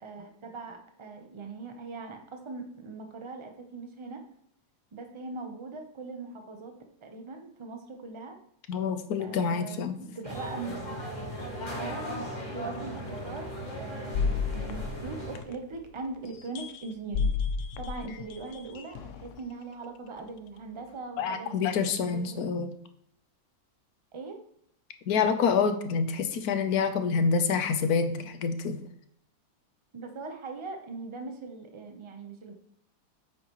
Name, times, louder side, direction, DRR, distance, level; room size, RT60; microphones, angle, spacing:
voice 1, 0.0-4.2 4.9-6.7 7.0-8.4 9.2-11.1 11.8-12.0 12.5-13.5 13.8-17.3 17.8-21.7 22.1-22.4 24.1-24.4 29.9-32.5, right 3 dB, 45° right, 5 dB, 0.3 m, -40 dB
voice 2, 8.7-9.9 21.2-22.7 25.1-28.8, left 5 dB, 65° left, 9 dB, 1.0 m, -27 dB
sound 1, 10.2-15.4, equal, 25° left, 1.9 m, -37 dB
sound 2, 12.2-12.3 13.0-13.1 14.1-15.8 16.3-19.4 20.2-20.3, left 5 dB, 90° left, 0.6 m, -32 dB
8.9 x 6.3 x 3.0 m, 0.70 s
omnidirectional pair, 2.0 m